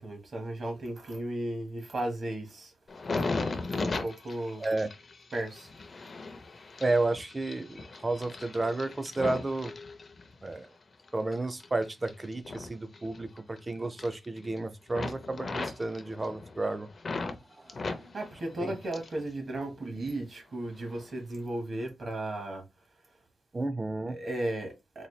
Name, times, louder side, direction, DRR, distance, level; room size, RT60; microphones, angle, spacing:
voice 1, 0.0-2.7 3.7-4.7 5.3-5.7 18.1-22.6 24.1-25.1, right 1 dB, 45° right, 1.1 m, -35 dB
sound 1, 2.9-10.5 11.0-13.6 13.8-14.6 14.9-17.4 17.7-19.3 19.5-20.3 20.8-21.0, left 3 dB, 40° left, 0.5 m, -38 dB
voice 2, 4.6-4.9 6.8-9.7 10.4-10.7 11.1-16.9 17.6-18.1 18.6-18.8 23.5-24.2, right 2 dB, 25° right, 0.4 m, -32 dB
4.0 x 2.3 x 3.1 m
wide cardioid pair, 150°, 0 cm